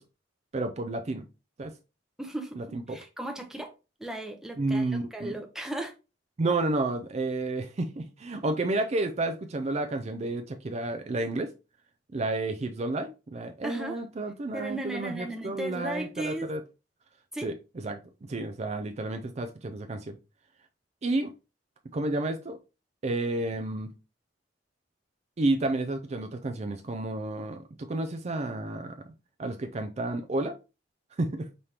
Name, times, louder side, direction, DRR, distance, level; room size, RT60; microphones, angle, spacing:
voice 1, 0.5-1.3 1.6-1.7 2.6-3.0 4.6-5.3 6.4-11.5 12.1-16.6 17.4-17.5 17.8-18.0 18.3-20.2 21.0-21.3 21.9-22.6 23.0-23.9 25.4-29.0 29.4-30.6 31.2-31.5, right 2 dB, 35° right, 0.4 m, -31 dB
voice 2, 2.2-3.7 4.0-5.9 13.6-14.0 14.5-16.5 17.3-17.5, right 1 dB, 5° right, 0.7 m, -36 dB
5.3 x 3.3 x 2.8 m
head